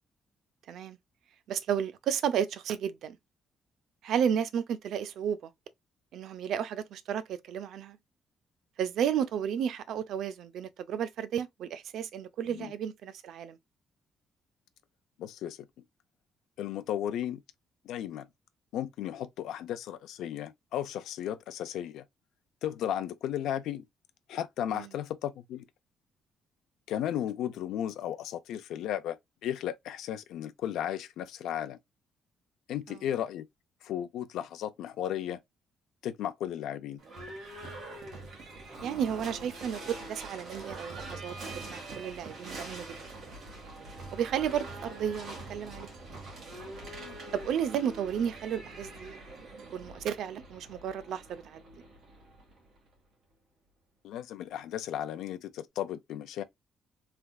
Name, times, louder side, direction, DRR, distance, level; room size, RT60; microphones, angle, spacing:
voice 1, 1.5-3.2 4.0-5.5 6.1-8.0 8.8-13.6 24.7-24.9 32.9-33.0 38.8-42.9 44.1-45.9 47.3-49.2 49.7-51.6, right 8 dB, 60° right, 0.5 m, -32 dB
voice 2, 15.2-15.6 16.6-17.4 17.8-18.3 18.7-22.0 22.6-23.8 24.3-25.6 26.9-29.2 29.4-31.8 32.7-33.4 33.8-35.4 36.0-37.0 47.0-47.2 54.0-56.4, left 11 dB, 90° left, 0.4 m, -35 dB
Livestock farm animals working animals / Bell, 37.0-52.9, right 2 dB, 45° right, 1.6 m, -44 dB
3.5 x 3.4 x 2.3 m
cardioid pair, 175°, 0 cm